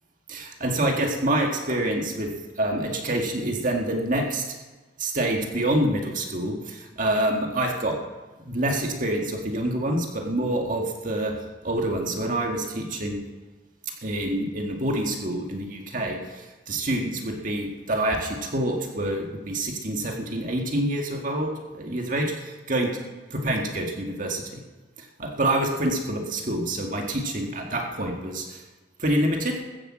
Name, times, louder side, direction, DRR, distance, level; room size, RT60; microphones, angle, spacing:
voice 1, 0.3-2.3 2.6-4.5 5.0-8.0 8.4-11.3 11.6-13.2 14.0-22.9 23.3-24.6 25.2-28.6 29.0-29.6, right 1 dB, 50° right, 1 dB, 1.9 m, -27 dB
14.0 x 8.5 x 7.5 m, 1.2 s
head